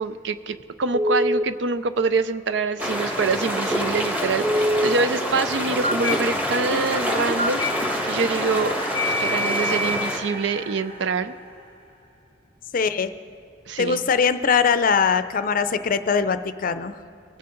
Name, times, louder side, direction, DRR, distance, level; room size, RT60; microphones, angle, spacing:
voice 1, 0.0-8.8 9.0-11.3 13.7-14.1, right 4 dB, 70° right, 12 dB, 0.5 m, -25 dB
Telephone, 0.9-1.4 4.4-4.9 5.8-6.1 7.4-7.7 8.9-10.0, equal, 30° right, 2.4 m, -23 dB
sound 1, 2.8-10.2, equal, 10° right, 1.4 m, -26 dB
sound 2, 6.0-12.1, right 1 dB, 55° right, 3.0 m, -39 dB
voice 2, 12.7-13.1 13.8-17.0, left 6 dB, 50° left, 12 dB, 0.5 m, -21 dB
21.0 x 8.5 x 3.8 m, 2.5 s
head